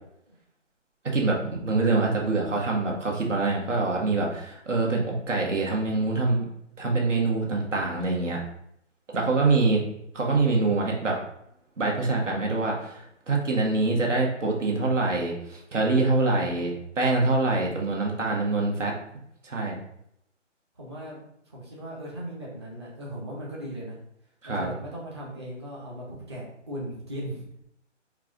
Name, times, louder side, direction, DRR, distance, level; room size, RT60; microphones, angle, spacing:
voice 1, 1.0-5.0 5.3-6.5 6.8-8.4 9.1-9.8 10.1-11.2 11.8-18.9 19.4-19.8 24.4-24.7, right 3 dB, 70° right, -1 dB, 1.4 m, -25 dB
voice 2, 16.1-16.8 20.8-21.2 21.5-24.0 24.4-27.5, right 1 dB, 20° right, -4 dB, 0.7 m, -38 dB
4.7 x 2.4 x 3.7 m, 0.76 s
hypercardioid pair, 160°, 38 cm